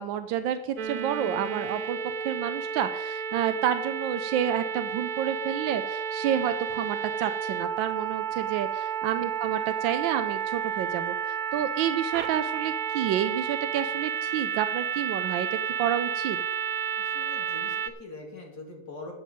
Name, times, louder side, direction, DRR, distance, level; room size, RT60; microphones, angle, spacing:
voice 1, 0.0-2.0 2.2-15.5 15.8-16.4, right 10 dB, 85° right, 11 dB, 1.3 m, -29 dB
sound 1, 0.8-17.9, right 8 dB, 60° right, 1.1 m, -31 dB
voice 2, 17.0-19.1, left 3 dB, 55° left, 0 dB, 3.3 m, -43 dB
11.5 x 8.5 x 5.1 m, 0.89 s
omnidirectional pair, 2.1 m